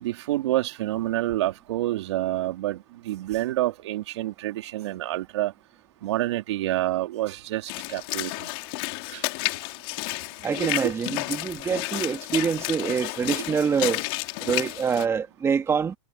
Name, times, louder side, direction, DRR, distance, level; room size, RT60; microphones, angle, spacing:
voice 1, 0.0-2.8 3.1-5.5 6.0-8.5 9.1-9.2 10.6-10.9, right 15 dB, 70° right, 2.9 m, -28 dB
Walk footsteps / Splash splatter, 7.7-15.1, left 27 dB, 50° left, 3.0 m, -31 dB
voice 2, 10.4-14.0 14.4-16.0, right 6 dB, 15° right, 2.3 m, -25 dB
hypercardioid pair, 130°, 15 cm